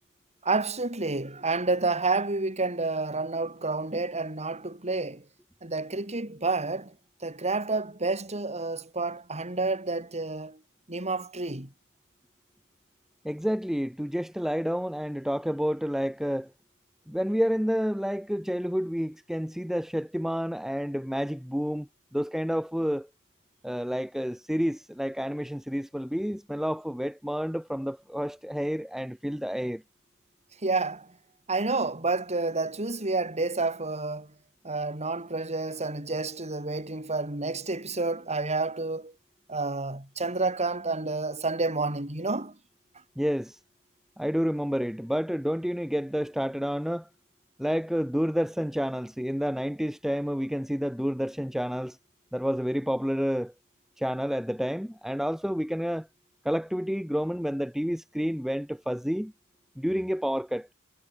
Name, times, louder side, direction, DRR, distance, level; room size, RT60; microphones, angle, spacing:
voice 1, 0.4-5.2 5.6-6.9 7.2-10.6 10.9-11.7 30.6-31.1 31.5-34.3 34.6-39.1 39.5-42.6, right 3 dB, 30° right, 5.5 m, -29 dB
voice 2, 13.2-16.5 17.1-23.1 23.6-29.8 43.2-43.6 44.2-47.1 47.6-52.0 52.3-53.5 54.0-56.1 56.4-59.3 59.8-60.7, equal, ahead, 1.1 m, -29 dB
head